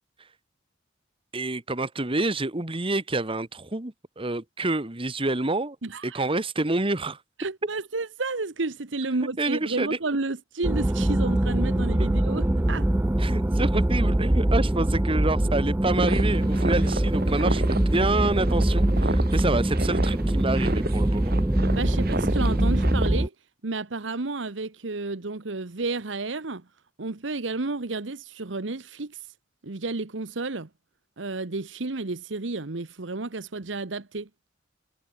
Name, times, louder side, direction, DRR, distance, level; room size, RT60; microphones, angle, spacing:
voice 1, 1.3-5.8 6.0-7.2 9.4-10.0 12.0-12.1 13.2-21.3, right 2 dB, 30° right, 1.5 m, -27 dB
voice 2, 5.8-6.2 7.4-12.9 21.7-23.3 23.6-26.6 27.0-29.2 29.6-30.7 31.2-34.3, right 3 dB, 70° right, 1.2 m, -31 dB
sound 1, 10.6-23.3, right 1 dB, 10° right, 0.5 m, -23 dB
sound 2, 15.9-23.1, right 2 dB, 55° right, 4.1 m, -32 dB
head